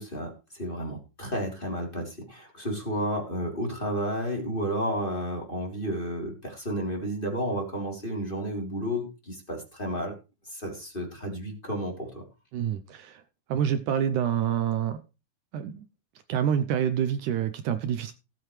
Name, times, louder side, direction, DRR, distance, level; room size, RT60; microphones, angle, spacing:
voice 1, 0.0-10.1 10.4-12.2, equal, 15° left, 3.3 m, -32 dB
voice 2, 12.5-13.2 13.5-15.0 15.5-15.9 16.3-18.1, right 9 dB, 75° right, 2.1 m, -27 dB
18.5 x 7.8 x 3.2 m
omnidirectional pair, 3.8 m